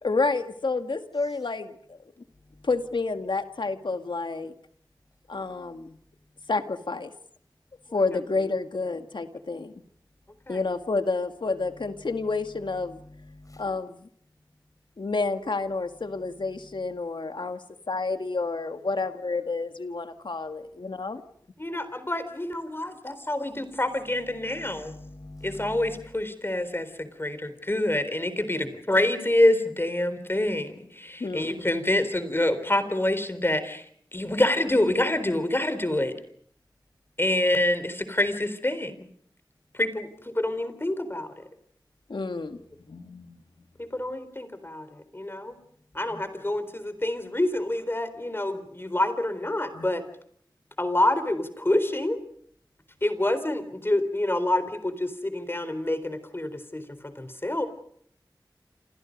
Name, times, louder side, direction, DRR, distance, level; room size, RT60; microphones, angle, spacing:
voice 1, 0.0-2.0 2.6-4.5 5.3-6.0 6.5-7.1 7.9-9.7 10.5-13.0 13.6-14.1 15.0-17.6 17.9-21.2 31.2-31.5 42.1-43.4 49.7-49.9, left 3 dB, 80° left, 8 dB, 1.9 m, -29 dB
voice 2, 12.0-12.3 12.7-13.6 16.6-16.7 24.3-26.1 46.1-46.2, left 2 dB, 45° left, 9 dB, 5.5 m, -46 dB
voice 3, 21.6-24.9 25.4-33.8 34.1-36.1 37.2-39.1 39.7-40.1 40.3-41.3 43.8-45.6 45.9-50.0 50.8-52.2 53.0-57.7, left 1 dB, 30° left, 11 dB, 3.9 m, -27 dB
29.0 x 27.5 x 5.3 m, 0.64 s
wide cardioid pair, 60°, 8 cm